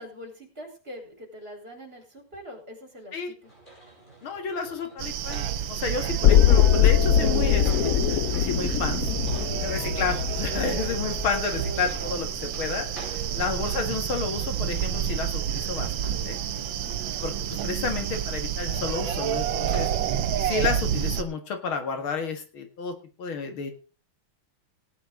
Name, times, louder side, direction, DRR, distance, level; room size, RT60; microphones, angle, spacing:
voice 1, 0.0-3.5 9.4-9.6 10.7-10.9 13.2-13.5 16.8-17.1 19.6-20.0, equal, 30° right, 2 dB, 4.7 m, -44 dB
sound 1, 3.4-20.3, right 2 dB, 25° left, 6.2 m, -50 dB
voice 2, 4.2-9.1 9.6-16.4 17.2-19.9 20.4-23.7, left 5 dB, 85° left, 6 dB, 2.8 m, -31 dB
sound 2, 5.0-21.2, right 9 dB, 75° right, 1.7 m, -29 dB
sound 3, 6.2-12.2 12.5-12.6, left 10 dB, 60° left, 1.0 m, -22 dB
18.0 x 9.5 x 3.8 m, 0.33 s
omnidirectional pair, 2.2 m